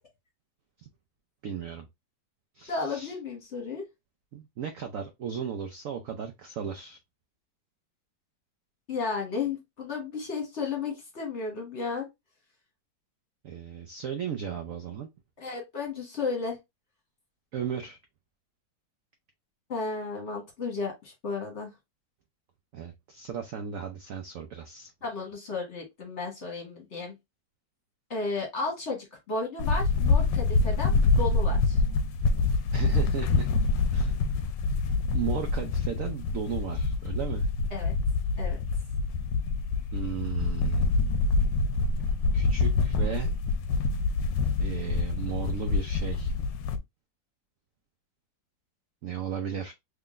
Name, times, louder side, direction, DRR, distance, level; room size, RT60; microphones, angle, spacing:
voice 1, 1.4-1.9 2.5-3.1 4.3-7.0 13.4-15.1 17.5-18.0 22.7-24.9 32.7-33.5 33.9-34.1 35.1-37.5 39.9-40.9 42.0-43.3 44.6-46.3 49.0-49.7, right 8 dB, 80° right, 0.7 m, -35 dB
voice 2, 2.7-3.8 8.9-12.1 15.4-16.6 19.7-21.7 25.0-27.1 28.1-31.8 37.7-37.9 38.4-38.6, left 4 dB, 40° left, 1.4 m, -33 dB
sound 1, 29.6-46.8, left 3 dB, 75° left, 1.2 m, -26 dB
3.7 x 3.3 x 2.4 m
omnidirectional pair, 2.1 m